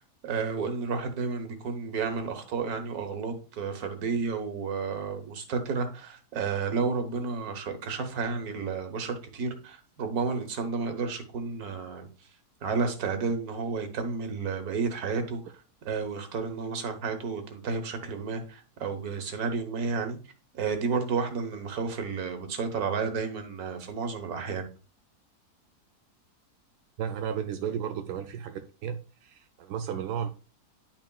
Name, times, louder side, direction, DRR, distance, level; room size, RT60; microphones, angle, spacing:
voice 1, 0.2-12.1 12.6-15.4 15.9-20.2 20.6-24.6, right 5 dB, 70° right, 1.6 m, -31 dB
voice 2, 27.0-30.3, right 8 dB, 90° right, 1.2 m, -34 dB
10.0 x 6.0 x 2.3 m
omnidirectional pair, 1.7 m